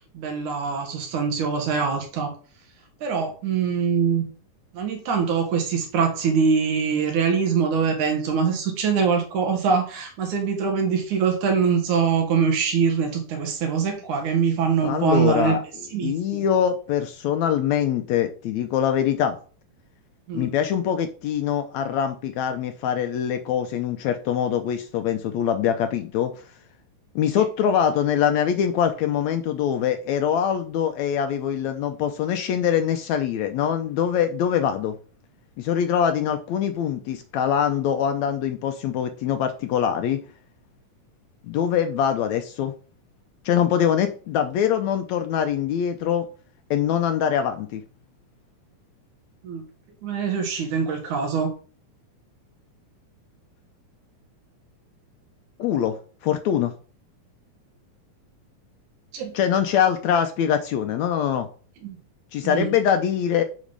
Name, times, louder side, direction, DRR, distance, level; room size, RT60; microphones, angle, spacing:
voice 1, 0.1-2.3 3.0-4.2 4.7-15.6 15.9-16.4 20.3-20.5 27.3-27.4 49.4-49.6 50.0-51.5 59.1-59.3 61.8-62.0 62.4-62.7, right 6 dB, 70° right, 3.0 m, -23 dB
voice 2, 14.8-19.4 20.3-26.3 27.2-35.0 35.6-40.2 41.4-42.7 43.5-46.3 46.7-47.8 55.6-56.7 59.3-61.5 62.3-63.4, left 9 dB, 75° left, 1.8 m, -23 dB
8.5 x 4.2 x 5.2 m
omnidirectional pair, 3.7 m